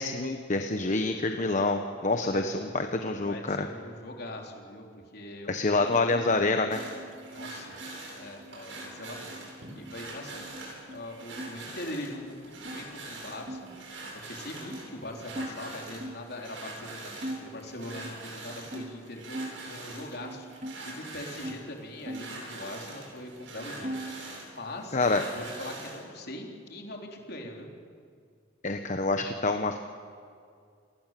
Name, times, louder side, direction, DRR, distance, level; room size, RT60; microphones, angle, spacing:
voice 1, 0.0-3.7 5.5-6.8 24.9-25.2 28.6-29.8, left 3 dB, 40° left, 6 dB, 1.1 m, -27 dB
voice 2, 2.1-2.5 3.0-5.7 7.3-7.8 8.1-9.4 9.7-10.4 10.9-13.7 14.3-19.4 19.7-24.0 24.5-25.0 25.3-27.7, left 1 dB, 55° left, 1 dB, 3.9 m, -41 dB
sound 1, 5.8-11.5 11.8-12.8 13.4-16.3 16.8-16.9 17.2-19.6 20.0-21.6 22.0-23.1 23.4-24.2, right 1 dB, 40° right, 2.0 m, -42 dB
sound 2, 6.7-26.0, right 2 dB, 75° right, 7.6 m, -44 dB
28.5 x 20.0 x 7.7 m, 2.3 s
head